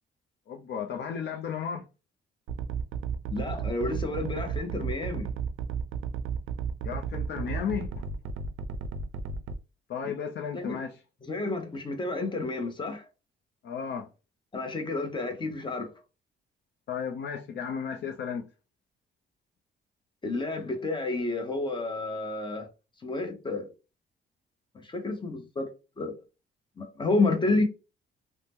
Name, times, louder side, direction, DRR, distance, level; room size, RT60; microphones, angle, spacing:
voice 1, 0.5-1.8 6.8-8.0 9.9-10.9 13.6-14.1 16.9-18.5, left 7 dB, 60° left, 0.5 m, -34 dB
sound 1, 2.5-9.6, right 6 dB, 85° right, 0.4 m, -33 dB
voice 2, 3.3-5.3 10.5-10.8 11.2-13.1 14.5-15.9 20.2-22.7 23.0-23.7 24.7-25.7 26.0-26.1 26.8-27.6, left 2 dB, 25° left, 0.8 m, -30 dB
2.8 x 2.1 x 3.5 m
cardioid pair, 90°, 20 cm